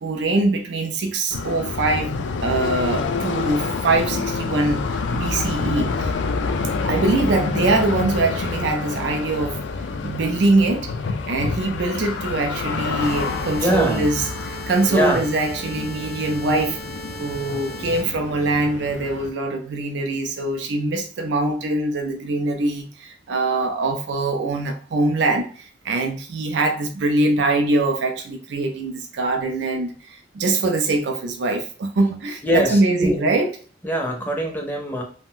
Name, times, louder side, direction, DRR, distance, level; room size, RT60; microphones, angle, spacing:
voice 1, 0.0-4.9 5.1-6.1 6.8-9.6 10.0-10.9 11.3-16.8 17.2-33.5, right 2 dB, 75° right, 0.4 m, -23 dB
sound 1, 1.3-19.3, left 4 dB, 85° left, 0.3 m, -28 dB
sound 2, 13.0-18.0, equal, 60° left, 0.7 m, -38 dB
voice 2, 13.6-14.1 14.9-15.2 32.4-33.2 33.8-35.0, equal, 10° left, 0.5 m, -22 dB
2.4 x 2.1 x 3.6 m
head